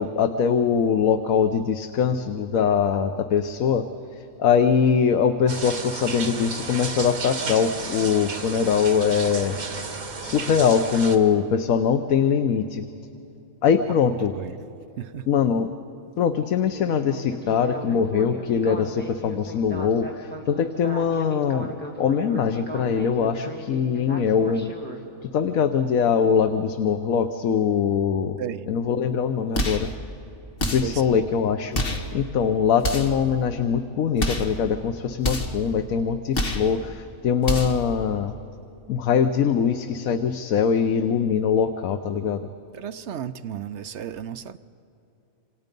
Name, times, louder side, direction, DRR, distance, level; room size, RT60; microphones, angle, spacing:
voice 1, 0.0-3.8 4.1-9.6 10.2-12.9 13.6-14.3 15.3-15.7 16.2-24.7 25.2-28.4 28.7-29.9 30.7-31.8 32.1-38.3 38.9-42.4, left 7 dB, 80° left, 8 dB, 1.2 m, -22 dB
sound 1, 5.5-11.2, right 4 dB, 80° right, 2.1 m, -33 dB
Speech synthesizer, 16.7-25.0, equal, 5° left, 2.4 m, -37 dB
sound 2, 29.5-29.9 30.6-31.0 31.7-32.1 32.8-33.2 34.2-34.6 35.2-35.6 36.3-36.7 37.4-37.9, left 1 dB, 40° left, 1.8 m, -27 dB
voice 2, 42.7-44.6, right 9 dB, 60° right, 12 dB, 0.9 m, -34 dB
27.5 x 26.5 x 5.3 m, 2.8 s
omnidirectional pair, 1.4 m